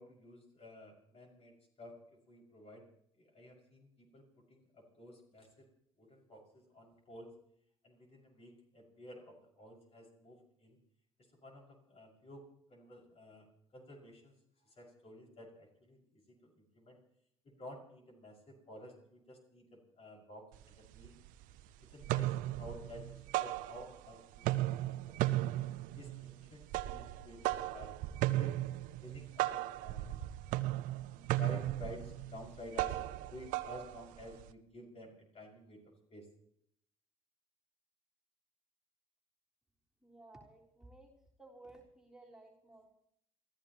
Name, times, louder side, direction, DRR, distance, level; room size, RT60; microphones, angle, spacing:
voice 1, 0.0-2.9 3.2-5.7 6.0-7.3 7.8-10.8 11.2-12.4 12.7-14.3 14.6-17.0 17.4-21.1 21.8-25.5 25.9-28.0 28.3-28.6 29.0-30.2 31.1-36.3, left 1 dB, 45° left, 0 dB, 6.2 m, -52 dB
sound 1, 20.5-20.6 21.0-21.6 21.9-24.1 24.4-34.5, right 16 dB, 65° right, 0.6 m, -36 dB
voice 2, 40.0-41.1 41.4-42.9, right 2 dB, 5° right, -2 dB, 3.6 m, -56 dB
28.5 x 14.0 x 3.1 m, 0.70 s
hypercardioid pair, 60°, 15 cm